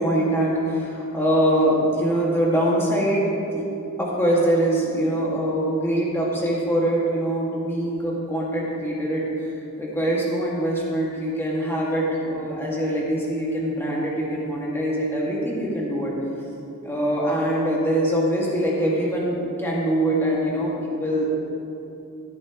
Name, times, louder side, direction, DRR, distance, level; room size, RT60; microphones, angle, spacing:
voice 1, 0.0-3.7 4.0-9.5 9.8-16.1 16.8-21.4, right 1 dB, 10° left, -5 dB, 2.1 m, -23 dB
16.5 x 9.1 x 3.1 m, 2.7 s
head